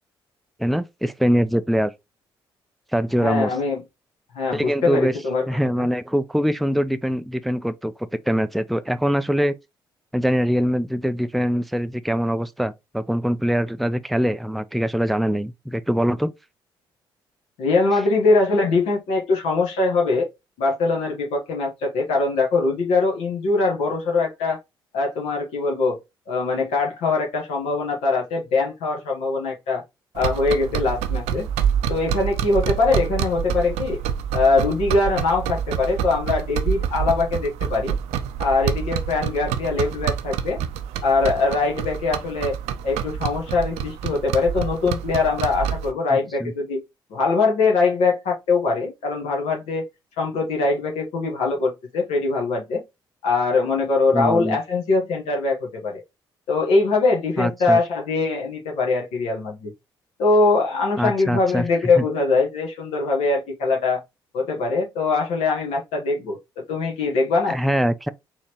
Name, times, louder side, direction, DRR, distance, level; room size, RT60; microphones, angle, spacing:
voice 1, 0.6-1.9 2.9-3.5 4.5-5.1 5.5-7.9 8.3-9.5 10.1-16.3 46.1-46.5 54.1-54.6 57.4-57.8 61.0-61.7 62.0-62.1 67.5-68.1, equal, ahead, 0.4 m, -23 dB
voice 2, 3.2-3.8 4.3-5.5 5.8-5.9 17.6-20.3 20.6-24.6 24.9-26.0 26.3-29.8 30.1-31.5 31.9-34.0 34.3-38.0 38.4-40.6 41.0-42.6 42.8-46.8 47.1-49.8 50.2-52.8 53.2-56.0 56.5-59.7 60.2-64.0 64.3-67.6, left 3 dB, 65° left, 1.2 m, -22 dB
sound 1, 30.2-45.9, right 8 dB, 65° right, 0.5 m, -27 dB
4.2 x 3.1 x 2.9 m
figure-of-eight pair, 45°, 12 cm